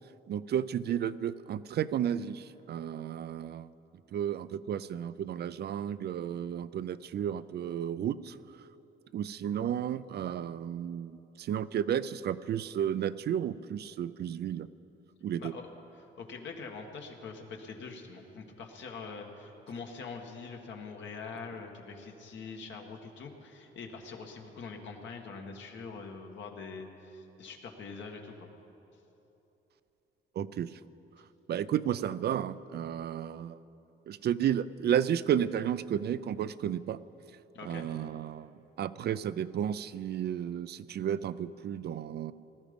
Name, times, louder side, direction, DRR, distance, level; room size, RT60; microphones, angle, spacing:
voice 1, 0.3-3.7 4.1-8.7 9.1-14.7 15.2-15.5 30.4-30.8 31.5-33.6 34.1-37.0 37.6-42.3, right 9 dB, 55° right, 15 dB, 0.4 m, -32 dB
voice 2, 15.4-15.7 16.0-28.5 37.5-37.9, left 4 dB, 70° left, 2 dB, 1.8 m, -44 dB
18.5 x 13.0 x 5.3 m, 3.0 s
cardioid pair, 90°, 20 cm